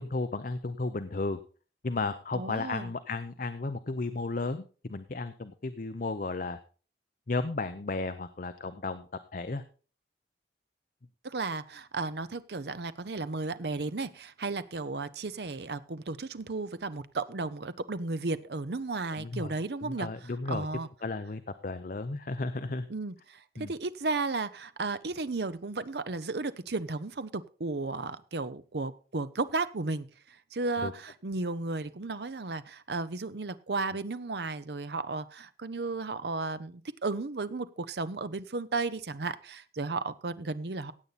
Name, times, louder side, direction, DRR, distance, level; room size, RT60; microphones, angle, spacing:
voice 1, 0.0-1.4 1.8-6.6 7.3-9.0 9.3-9.6 19.1-19.5 19.8-20.7 21.0-22.9 23.6-23.7 30.8-30.9, left 3 dB, 50° left, 10 dB, 0.7 m, -34 dB
voice 2, 2.3-2.9 11.2-20.9 22.9-40.9, right 3 dB, 65° right, 14 dB, 0.7 m, -34 dB
16.0 x 8.3 x 4.1 m, 0.38 s
head